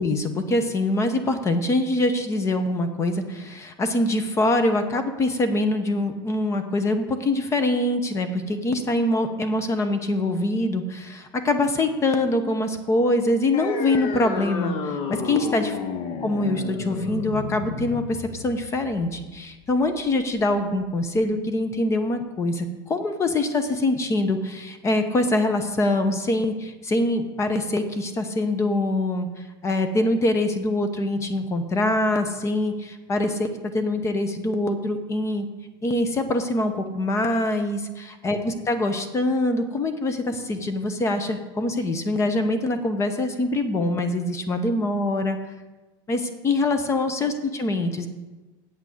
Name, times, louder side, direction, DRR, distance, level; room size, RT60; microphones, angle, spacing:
voice 1, 0.0-15.8 16.2-29.3 29.6-35.5 35.8-45.4 46.1-48.1, left 2 dB, 25° left, 8 dB, 0.8 m, -24 dB
sound 1, 13.5-20.5, left 5 dB, 45° left, 1.0 m, -32 dB
8.1 x 6.0 x 7.7 m, 1.2 s
supercardioid pair, 135°, 12 cm